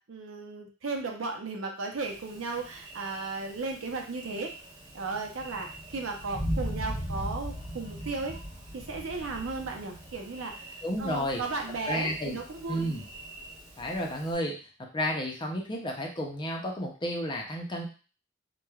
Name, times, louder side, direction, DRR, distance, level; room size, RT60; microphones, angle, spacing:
voice 1, 0.1-4.5 4.9-8.4 8.7-10.6 11.0-12.9, right 3 dB, 90° right, 3 dB, 0.6 m, -35 dB
Thunder, 2.0-14.4, equal, 20° right, 1.0 m, -40 dB
voice 2, 10.8-11.4 11.9-12.4 12.7-13.0 13.8-17.9, equal, 25° left, 0 dB, 0.5 m, -32 dB
3.2 x 2.1 x 2.3 m, 0.36 s
head